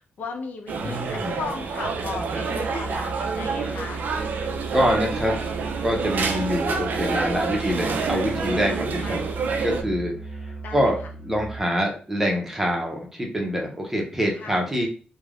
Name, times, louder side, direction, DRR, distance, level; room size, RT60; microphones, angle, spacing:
voice 1, 0.2-4.1 9.0-9.4 10.6-11.1 14.3-14.6, left 4 dB, 65° left, 3 dB, 0.5 m, -36 dB
sound 1, 0.7-9.8, right 4 dB, 70° right, 0.4 m, -28 dB
voice 2, 0.8-1.4 4.7-5.4 5.8-9.2 9.6-11.0 11.2-14.9, equal, 10° right, 0 dB, 0.6 m, -25 dB
Musical instrument, 1.8-11.7, right 4 dB, 15° left, 0.9 m, -36 dB
3.1 x 2.1 x 2.4 m, 0.41 s
wide cardioid pair, 130°, 3 cm